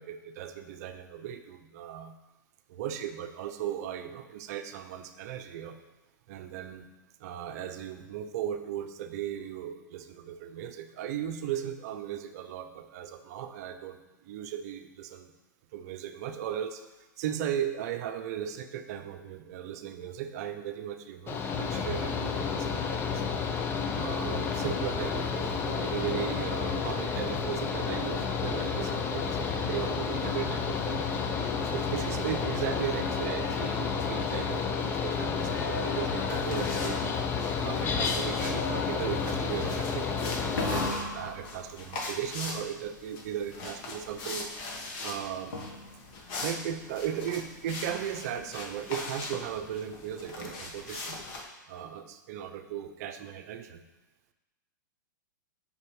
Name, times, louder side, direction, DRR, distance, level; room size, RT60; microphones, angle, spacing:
voice 1, 0.0-2.1 2.7-5.8 6.3-6.9 7.2-15.3 15.7-16.8 17.2-23.2 23.9-31.1 31.5-37.0 37.6-44.5 45.0-45.5 46.4-51.2 51.7-53.8, right 10 dB, 50° right, 8 dB, 0.6 m, -37 dB
Mechanical fan, 21.3-40.9, left 5 dB, 20° left, 0.5 m, -31 dB
sound 1, 33.1-35.0 35.4-37.8 38.3-39.2 40.6-42.2 45.5-46.2, left 2 dB, 85° left, 1.1 m, -39 dB
sound 2, 36.3-51.4, left 2 dB, 40° left, 1.2 m, -41 dB
7.5 x 5.8 x 3.1 m, 1.1 s
hypercardioid pair, 120°, 11 cm